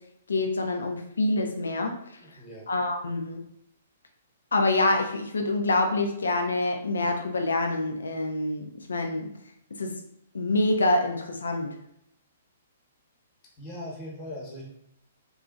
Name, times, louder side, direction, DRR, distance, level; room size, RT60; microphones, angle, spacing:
voice 1, 0.3-1.9 2.7-3.4 4.5-9.3 9.8-9.9 10.3-11.7, left 2 dB, 75° left, 4 dB, 0.4 m, -26 dB
voice 2, 2.2-2.7 13.6-14.6, left 1 dB, 30° left, -3 dB, 1.0 m, -40 dB
2.9 x 2.5 x 2.5 m, 0.75 s
figure-of-eight pair, 125°, 0 cm